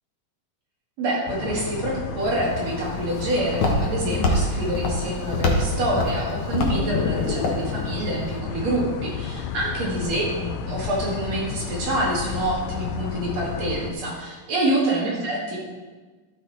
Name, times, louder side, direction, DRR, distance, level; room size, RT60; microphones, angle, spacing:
voice 1, 1.0-15.6, right 1 dB, 55° right, -4 dB, 3.1 m, -26 dB
sound 1, 1.3-13.9, left 7 dB, 85° left, 1.5 m, -31 dB
Walk footsteps, 2.2-8.4, left 1 dB, 55° left, 1.5 m, -26 dB
13.0 x 6.3 x 4.2 m, 1.3 s
omnidirectional pair, 3.9 m